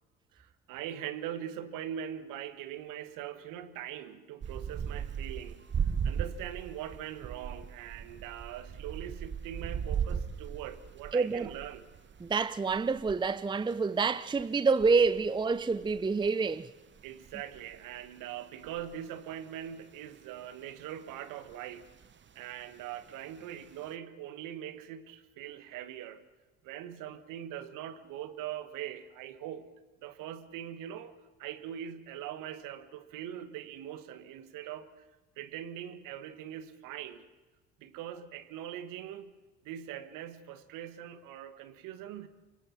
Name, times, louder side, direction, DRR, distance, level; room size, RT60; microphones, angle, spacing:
voice 1, 0.3-11.9 17.0-22.0 22.3-26.3 26.6-29.7 30.0-35.0 35.4-37.3 37.8-42.3, right 10 dB, 65° right, 1.5 m, -42 dB
sound 1, 4.4-19.7 20.3-21.1 21.5-22.8 23.1-23.9, right 7 dB, 30° right, 1.0 m, -38 dB
voice 2, 11.1-11.5 12.2-16.7, right 4 dB, 15° right, 0.6 m, -27 dB
28.0 x 24.5 x 4.4 m
hypercardioid pair, 55°, 35 cm